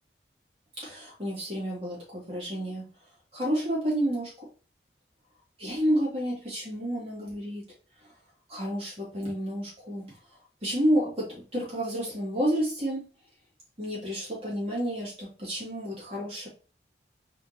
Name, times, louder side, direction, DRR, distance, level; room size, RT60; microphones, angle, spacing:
voice 1, 0.8-2.9 3.3-4.5 5.6-7.6 8.0-8.1 8.5-13.1 13.8-16.5, equal, 30° right, -4 dB, 2.2 m, -30 dB
4.1 x 3.2 x 2.8 m, 0.35 s
head